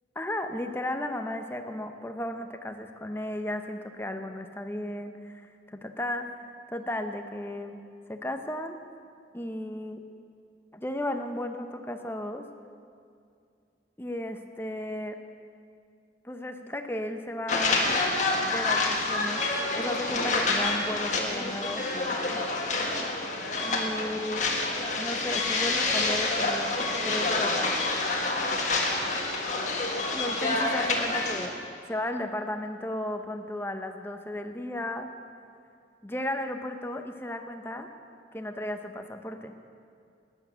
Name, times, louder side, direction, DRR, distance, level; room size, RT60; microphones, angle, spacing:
voice 1, 0.2-6.3 6.7-7.8 8.1-8.8 9.3-10.0 10.7-12.5 14.0-15.2 16.2-17.8 18.5-19.5 19.8-21.9 23.6-24.4 25.0-26.7 27.0-27.9 30.1-31.5 31.9-35.1 36.0-37.9 38.3-39.5, left 1 dB, 15° left, 6 dB, 0.8 m, -34 dB
sound 1, 17.5-31.5, left 2 dB, 40° left, 1.7 m, -28 dB
13.0 x 10.0 x 8.1 m, 2.4 s
head